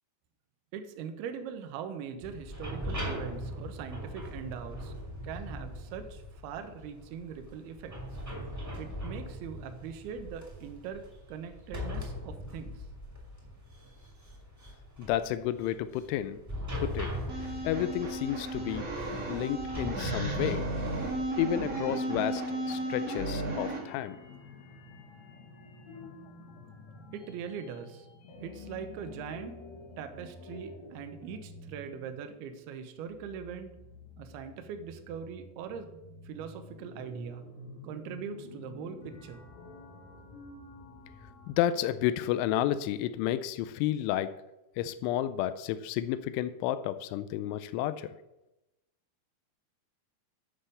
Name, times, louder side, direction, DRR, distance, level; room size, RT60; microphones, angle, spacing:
voice 1, 0.7-4.9 5.2-7.9 8.8-11.0 11.3-12.9 27.1-28.1 28.4-29.6 30.0-33.7 34.2-35.9 36.2-37.5 37.8-39.4, right 7 dB, 80° right, 7 dB, 2.4 m, -41 dB
sound 1, 2.2-22.0, equal, 5° right, 1.2 m, -41 dB
voice 2, 15.0-16.4 16.8-17.1 17.6-18.9 19.3-20.7 21.4-22.4 22.7-24.2 41.5-44.3 44.8-48.1, left 12 dB, 90° left, 12 dB, 3.0 m, -31 dB
sound 2, 17.3-23.8, right 2 dB, 55° right, 0.9 m, -34 dB
sound 3, 22.5-41.5, left 2 dB, 70° left, 1.7 m, -49 dB
10.0 x 5.6 x 6.7 m, 0.94 s
omnidirectional pair, 5.4 m